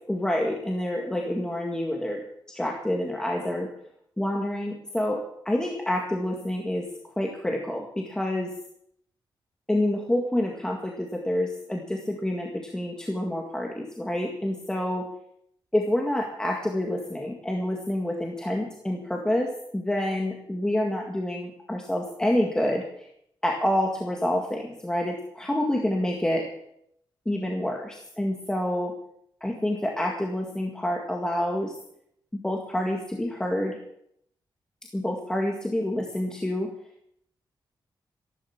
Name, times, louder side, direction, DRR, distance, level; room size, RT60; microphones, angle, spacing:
voice 1, 0.1-2.2 2.5-3.7 4.2-6.9 7.2-8.5 9.7-15.0 15.7-23.1 23.4-26.5 27.3-28.9 29.4-31.7 32.3-33.8 34.9-36.7, left 1 dB, 10° left, 0 dB, 1.9 m, -28 dB
15.0 x 11.5 x 7.1 m, 0.72 s
wide cardioid pair, 155°, 8 cm